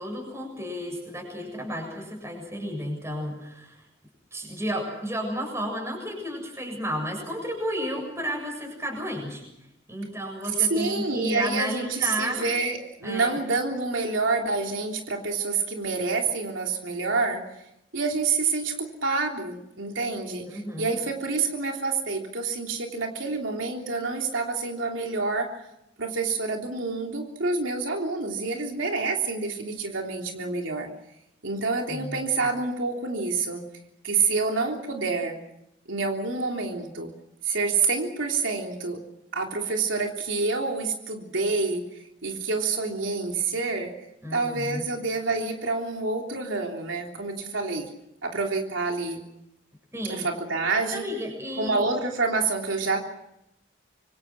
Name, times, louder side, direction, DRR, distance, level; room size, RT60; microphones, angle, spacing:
voice 1, 0.0-3.8 4.3-9.4 9.9-12.5 13.0-13.3 20.5-21.0 31.9-32.3 44.2-44.8 49.9-50.3 50.9-51.9, equal, 15° right, 1 dB, 7.3 m, -32 dB
voice 2, 10.6-17.5 17.9-25.6 26.0-30.9 31.4-33.7 34.0-35.4 35.9-37.1 37.4-39.0 39.3-43.9 44.3-47.9 48.2-49.2 50.1-51.0 51.6-53.0, right 4 dB, 80° right, 1 dB, 3.4 m, -27 dB
26.5 x 24.5 x 6.1 m, 0.84 s
head